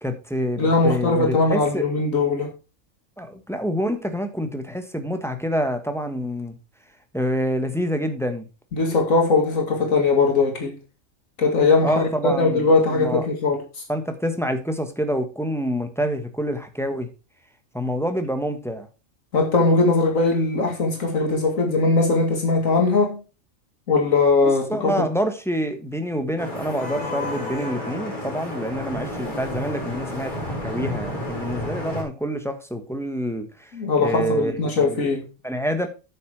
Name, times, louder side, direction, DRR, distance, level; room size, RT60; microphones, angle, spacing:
voice 1, 0.0-1.9 3.2-6.5 7.1-8.5 11.8-13.2 13.9-17.1 17.7-18.9 24.7-33.7 34.0-34.5 34.8-35.0 35.4-35.9, equal, ahead, 1.3 m, -27 dB
voice 2, 0.6-2.5 8.7-10.8 11.4-13.6 19.3-23.2 23.9-25.1 33.7-35.3, left 3 dB, 85° left, 2.5 m, -20 dB
Vehicle horn car horn honking / Traffic noise roadway noise, 26.4-32.0, left 1 dB, 35° left, 4.5 m, -31 dB
9.3 x 7.0 x 4.8 m
omnidirectional pair, 1.3 m